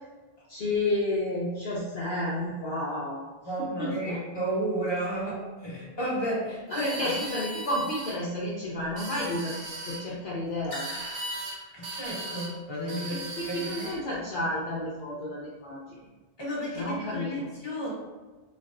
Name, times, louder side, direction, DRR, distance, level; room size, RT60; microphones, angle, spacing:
voice 1, 0.5-3.2 3.6-4.2 6.7-9.5 9.9-10.9 13.1-16.0 16.7-17.5, left 1 dB, 60° left, -6 dB, 0.8 m, -31 dB
voice 2, 3.4-6.9 11.7-13.9 16.4-17.9, right 1 dB, 25° left, -6 dB, 1.2 m, -32 dB
sound 1, 6.7-8.2 8.8-10.0 10.7-11.6 11.8-12.5 12.9-14.0, right 2 dB, 65° right, 0.9 m, -37 dB
Raindrop / Drip, 7.1-8.3 10.6-12.0, left 2 dB, 80° left, 1.0 m, -44 dB
4.0 x 3.1 x 2.5 m, 1.3 s
omnidirectional pair, 1.0 m